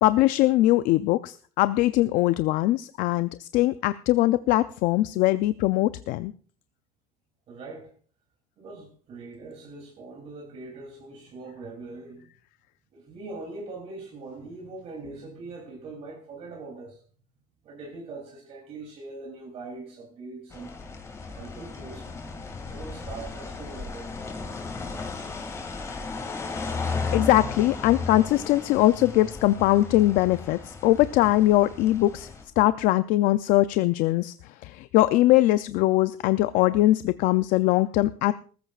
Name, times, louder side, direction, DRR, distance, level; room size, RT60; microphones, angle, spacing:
voice 1, 0.0-6.3 27.1-32.3 32.6-34.3 34.6-38.3, left 16 dB, 75° left, 0.5 m, -21 dB
voice 2, 7.5-7.9 8.6-12.3 12.9-17.0 17.6-20.8 21.3-22.1 22.6-24.1, right 3 dB, 45° right, 3.0 m, -41 dB
sound 1, 20.5-32.4, left 4 dB, 20° left, 2.2 m, -35 dB
19.0 x 14.5 x 2.4 m
cardioid pair, 155°, 14 cm